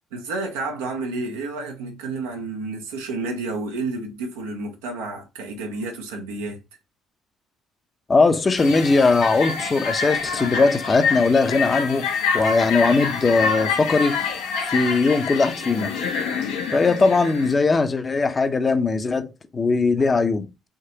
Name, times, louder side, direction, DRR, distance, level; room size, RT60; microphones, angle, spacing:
voice 1, 0.1-6.6, right 3 dB, 90° right, 0.8 m, -30 dB
voice 2, 8.1-12.1 12.3-14.2 14.6-15.9 16.7-19.3 19.5-20.5, left 3 dB, 35° left, 0.7 m, -19 dB
sound 1, 8.6-17.5, left 5 dB, 85° left, 1.0 m, -27 dB
3.7 x 2.8 x 2.8 m
hypercardioid pair, 60°, 0 cm